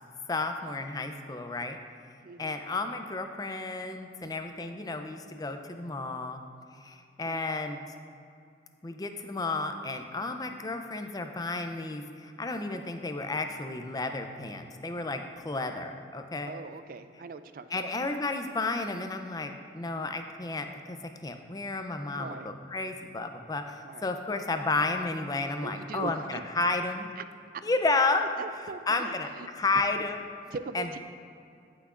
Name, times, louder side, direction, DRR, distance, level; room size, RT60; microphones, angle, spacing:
voice 1, 0.3-1.8 2.4-6.4 6.8-7.8 8.8-16.5 17.7-27.1 27.6-28.2 28.9-29.3 29.5-30.2 30.7-31.0, left 3 dB, 20° left, 6 dB, 0.4 m, -32 dB
voice 2, 2.2-2.6 7.2-7.5 16.5-17.9 19.9-20.2 22.1-22.5 23.8-24.1 25.6-26.4 27.2-27.3 28.4-29.5 30.5-31.0, right 4 dB, 50° right, 11 dB, 0.3 m, -41 dB
16.0 x 5.9 x 2.5 m, 2.4 s
head